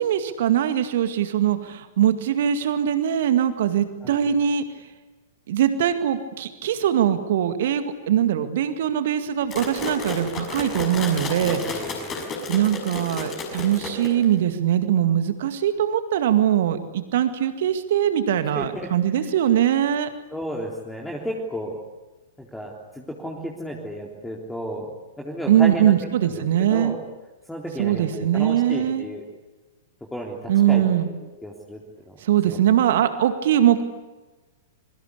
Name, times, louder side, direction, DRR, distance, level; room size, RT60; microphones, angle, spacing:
voice 1, 0.0-4.6 5.5-12.0 12.5-20.1 25.5-26.9 27.8-29.1 30.5-31.1 32.2-33.8, right 10 dB, 55° right, 9 dB, 2.0 m, -21 dB
voice 2, 4.0-4.3 11.4-12.3 18.5-19.3 20.3-21.8 22.4-24.9 25.2-25.9 26.2-26.4 26.7-27.0 27.5-29.2 30.1-30.4 30.7-31.1 31.4-31.8 32.1-32.2 32.5-32.6, equal, 5° left, -1 dB, 3.7 m, -33 dB
sound 1, 9.5-14.4, left 3 dB, 25° left, 6.4 m, -32 dB
27.0 x 23.5 x 8.4 m, 1.2 s
figure-of-eight pair, 105°, 0 cm